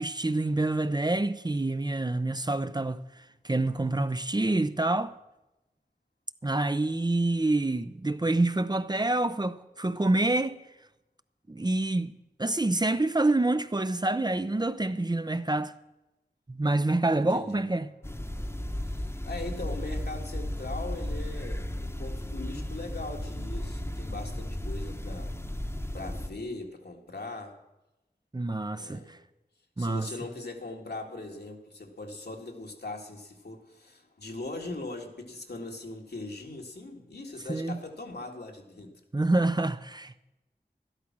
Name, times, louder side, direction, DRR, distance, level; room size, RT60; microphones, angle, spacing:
voice 1, 0.0-3.0 3.4-5.1 6.4-10.6 11.5-12.1 12.4-15.7 16.5-17.9 28.3-29.2 29.8-30.1 37.5-37.8 39.1-40.2, right 2 dB, 25° right, 0.6 m, -27 dB
voice 2, 17.3-17.6 18.3-25.3 25.9-27.6 28.8-29.2 29.8-38.9, left 2 dB, 80° left, 2.1 m, -40 dB
sound 1, 18.0-26.3, left 1 dB, 15° left, 1.0 m, -34 dB
12.5 x 12.0 x 6.1 m
wide cardioid pair, 55°, 17 cm